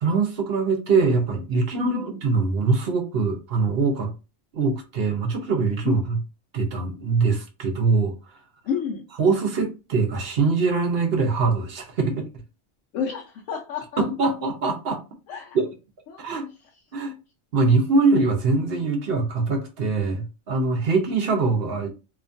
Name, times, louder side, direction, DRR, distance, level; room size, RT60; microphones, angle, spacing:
voice 1, 0.0-4.1 4.5-6.2 6.5-8.1 9.2-12.2 14.0-15.0 15.5-15.7 16.2-16.5 16.9-17.1 17.5-21.9, right 4 dB, 55° right, 0.8 m, -23 dB
voice 2, 1.8-2.2 5.8-6.0 8.6-9.1 12.9-14.3 15.3-15.6 16.1-16.3, left 6 dB, 80° left, 0.9 m, -30 dB
2.8 x 2.3 x 2.5 m
omnidirectional pair, 1.3 m